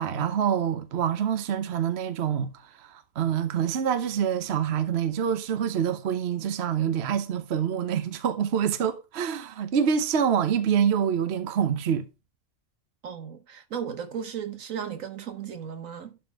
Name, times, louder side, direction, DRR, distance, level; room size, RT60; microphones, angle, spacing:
voice 1, 0.0-2.5 2.8-12.0, right 8 dB, 55° right, 1.0 m, -26 dB
voice 2, 13.0-16.2, right 8 dB, 70° right, 1.4 m, -35 dB
11.5 x 4.2 x 4.6 m
omnidirectional pair, 1.5 m